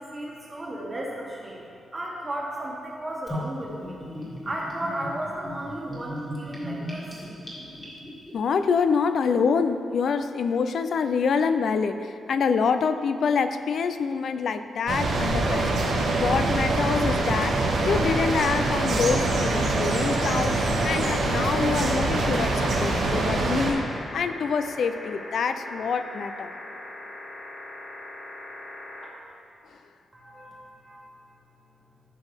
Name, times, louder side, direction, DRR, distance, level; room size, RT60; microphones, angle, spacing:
voice 1, 0.0-1.7 1.9-4.2 4.4-7.4 30.1-31.2, right 1 dB, 15° right, -3 dB, 1.5 m, -34 dB
Gurgling / Bathtub (filling or washing), 3.3-8.3, left 1 dB, 10° left, 1.9 m, -37 dB
voice 2, 8.3-15.8 16.2-17.6 17.9-20.6 20.8-23.9 24.1-26.5, left 5 dB, 55° left, 10 dB, 0.4 m, -26 dB
sound 1, 14.9-23.7, right 2 dB, 85° right, 2.0 m, -24 dB
sound 2, 17.8-29.1 30.5-30.6, left 1 dB, 30° left, 1.7 m, -41 dB
14.0 x 6.2 x 3.5 m, 2.7 s
wide cardioid pair, 170°, 0 cm